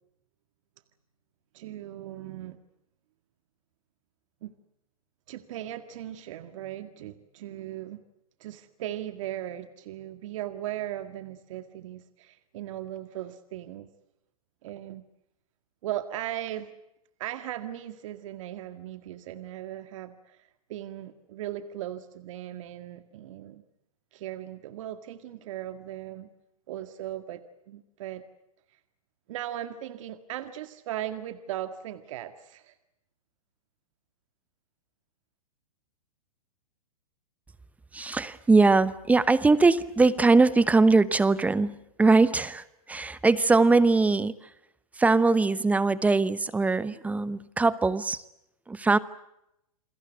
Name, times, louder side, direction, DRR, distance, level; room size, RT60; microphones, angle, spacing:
voice 1, 1.5-2.6 4.4-4.5 5.3-8.0 8.4-13.9 14.6-15.0 15.8-16.7 17.2-23.6 24.1-26.3 26.7-28.2 29.3-32.7, right 12 dB, 60° right, 10 dB, 1.9 m, -38 dB
voice 2, 37.9-44.3 45.0-48.2 48.7-49.0, right 3 dB, 10° right, 17 dB, 0.9 m, -21 dB
28.5 x 21.5 x 8.0 m, 0.84 s
hypercardioid pair, 135°, 19 cm